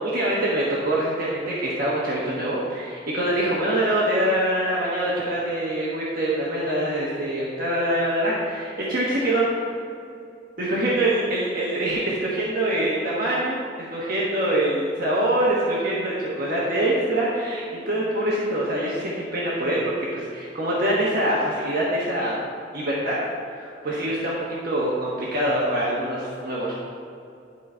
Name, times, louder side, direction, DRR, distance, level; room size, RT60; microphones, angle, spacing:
voice 1, 0.0-9.7 10.6-22.3 22.7-23.2 23.5-26.8, right 1 dB, 55° right, -6 dB, 1.3 m, -24 dB
11.0 x 4.2 x 4.4 m, 2.5 s
head